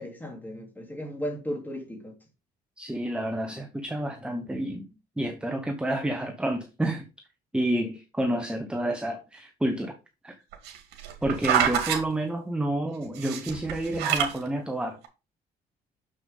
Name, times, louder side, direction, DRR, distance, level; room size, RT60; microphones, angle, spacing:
voice 1, 0.0-2.1 5.5-5.6, equal, 10° left, 2.8 m, -36 dB
voice 2, 2.8-4.9 5.2-7.1 7.5-10.0 10.2-10.3 11.2-15.0, right 1 dB, 5° right, 1.0 m, -29 dB
sound 1, 10.5-12.0 13.2-14.4 15.0-15.1, right 9 dB, 85° right, 2.1 m, -26 dB
7.0 x 6.7 x 3.6 m
cardioid pair, 110°, 17 cm